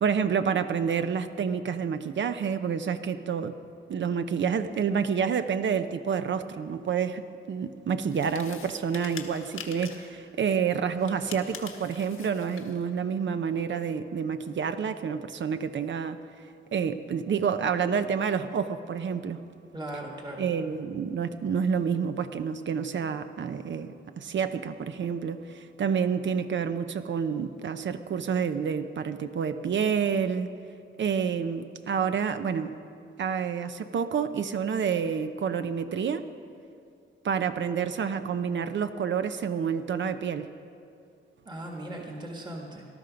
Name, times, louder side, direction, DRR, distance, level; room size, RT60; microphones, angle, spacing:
voice 1, 0.0-3.6 3.9-7.2 7.5-16.2 16.7-19.4 20.4-30.5 31.0-32.7 33.2-36.3 37.2-40.5, right 6 dB, 60° right, 10 dB, 0.7 m, -28 dB
sound 1, 8.1-10.1 11.0-12.8, left 6 dB, 85° left, 1.4 m, -44 dB
voice 2, 19.7-20.4 41.5-42.9, right 1 dB, 20° right, 0 dB, 1.7 m, -38 dB
18.5 x 12.5 x 5.2 m, 2.4 s
cardioid pair, 110°, 21 cm